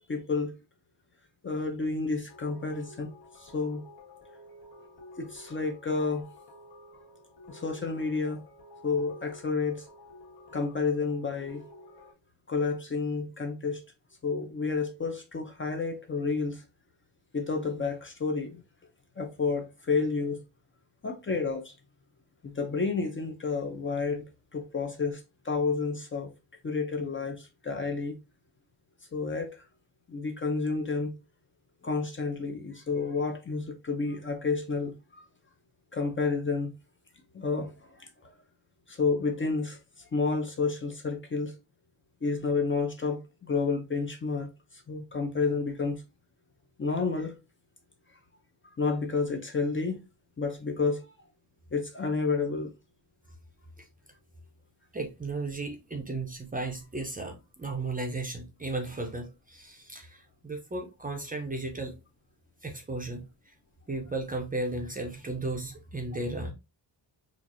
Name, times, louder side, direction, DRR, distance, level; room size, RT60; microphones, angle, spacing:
voice 1, 0.1-0.6 1.4-3.1 3.4-3.8 5.2-6.3 7.5-8.5 8.8-9.9 10.5-11.6 12.5-13.8 14.2-16.6 17.3-18.6 19.2-20.4 21.0-21.7 22.4-26.3 26.6-28.2 29.1-29.6 30.1-31.2 31.8-35.2 35.9-36.7 37.3-38.3 38.9-41.6 42.2-46.0 46.8-47.3 48.1-48.2 48.8-50.0 50.4-51.1 51.7-52.7, left 4 dB, 25° left, 0.5 m, -30 dB
sound 1, 2.3-12.1, left 1 dB, 65° left, 1.4 m, -52 dB
voice 2, 54.9-61.9 62.6-63.5 63.9-66.5, right 2 dB, 20° right, 0.5 m, -35 dB
4.4 x 2.4 x 2.5 m
wide cardioid pair, 130°, 45 cm